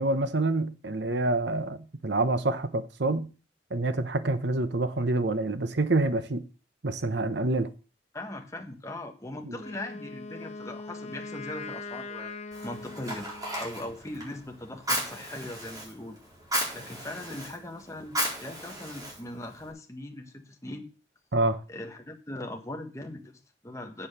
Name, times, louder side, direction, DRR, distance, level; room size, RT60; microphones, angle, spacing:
voice 1, 0.0-3.3 3.7-6.4 6.8-7.7 9.4-9.6 21.3-21.6, right 2 dB, 70° right, 1.0 m, -27 dB
voice 2, 8.1-12.3 12.6-13.3 13.6-16.2 16.7-20.9 21.7-24.1, left 1 dB, 15° left, 1.6 m, -40 dB
Wind instrument woodwind instrument, 9.5-13.7, left 3 dB, 40° left, 1.1 m, -41 dB
Fire, 12.5-19.7, equal, 20° right, 4.1 m, -35 dB
8.1 x 7.2 x 6.7 m
head